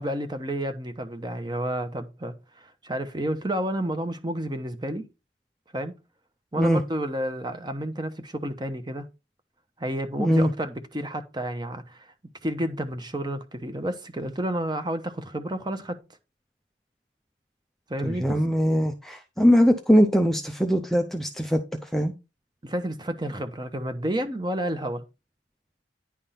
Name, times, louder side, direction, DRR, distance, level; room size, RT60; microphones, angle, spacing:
voice 1, 0.0-5.1 5.7-5.9 6.5-9.1 9.8-12.1 12.4-16.0 17.9-18.4 22.6-25.0, right 1 dB, 20° right, 0.9 m, -30 dB
voice 2, 10.2-10.5 18.0-22.1, equal, ahead, 0.5 m, -21 dB
10.0 x 3.6 x 5.7 m
head